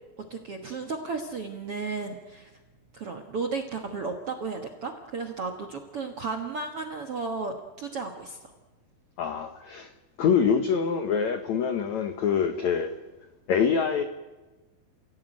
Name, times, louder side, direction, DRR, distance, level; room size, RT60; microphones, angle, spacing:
voice 1, 0.3-2.5 2.9-8.5, right 4 dB, 65° right, 3 dB, 1.4 m, -34 dB
voice 2, 9.2-9.9 10.2-12.9 13.5-14.0, left 7 dB, 90° left, 7 dB, 1.5 m, -25 dB
30.0 x 16.5 x 9.1 m, 1.2 s
omnidirectional pair, 5.0 m